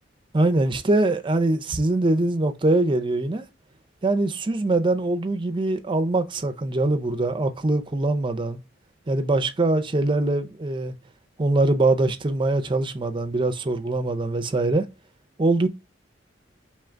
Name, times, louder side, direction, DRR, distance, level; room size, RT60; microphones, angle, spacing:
voice 1, 0.3-3.4 4.0-8.6 9.1-10.9 11.4-14.9 15.4-15.7, right 2 dB, 25° right, 0.5 m, -23 dB
3.7 x 3.2 x 3.3 m
head